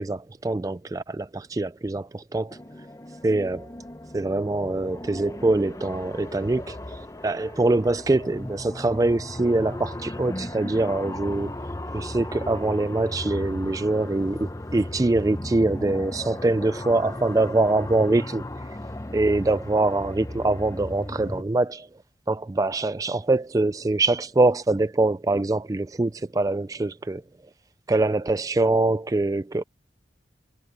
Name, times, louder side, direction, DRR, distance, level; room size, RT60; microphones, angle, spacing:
voice 1, 0.0-2.6 3.2-3.7 4.1-11.5 11.9-18.4 19.1-21.9 22.3-27.2 27.9-29.6, right 2 dB, 20° right, 0.3 m, -24 dB
sound 1, 2.5-21.4, left 1 dB, 20° left, 0.7 m, -36 dB
head